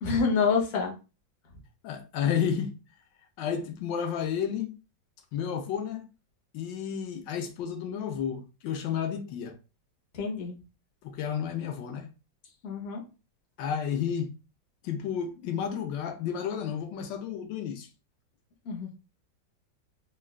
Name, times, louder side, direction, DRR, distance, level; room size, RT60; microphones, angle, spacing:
voice 1, 0.0-0.9 10.1-10.6 12.6-13.0 18.6-18.9, left 5 dB, 55° left, 0.7 m, -27 dB
voice 2, 1.8-2.7 3.4-4.8 5.3-6.1 6.5-9.6 11.0-12.1 13.6-14.3 14.8-17.9, left 8 dB, 80° left, 1.2 m, -31 dB
3.9 x 2.2 x 2.2 m
omnidirectional pair, 2.0 m